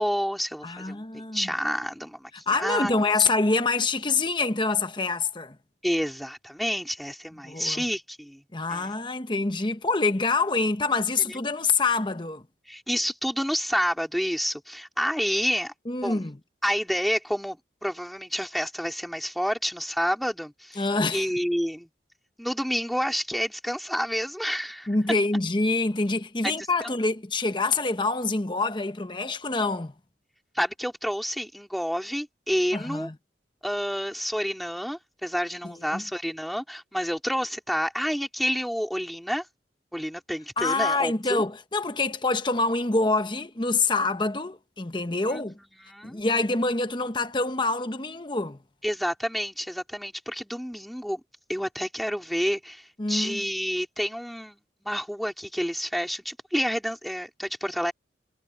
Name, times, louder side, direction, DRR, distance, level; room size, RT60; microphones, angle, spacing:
voice 1, 0.0-1.1 1.3-3.3 5.8-8.4 8.7-8.9 11.3-11.4 12.7-15.7 16.0-16.2 16.6-20.8 21.1-21.9 22.4-24.9 26.4-26.5 26.8-26.9 30.5-33.1 33.6-39.5 39.9-41.4 45.3-45.4 45.8-46.2 48.8-51.2 51.5-57.9, equal, ahead, 3.6 m, -29 dB
voice 2, 0.6-1.5 2.5-5.6 7.4-7.8 8.5-12.4 15.9-16.4 20.8-21.3 24.9-29.9 32.7-33.1 35.6-36.0 40.6-45.6 46.0-48.6 53.0-53.4, left 3 dB, 25° left, 1.0 m, -26 dB
head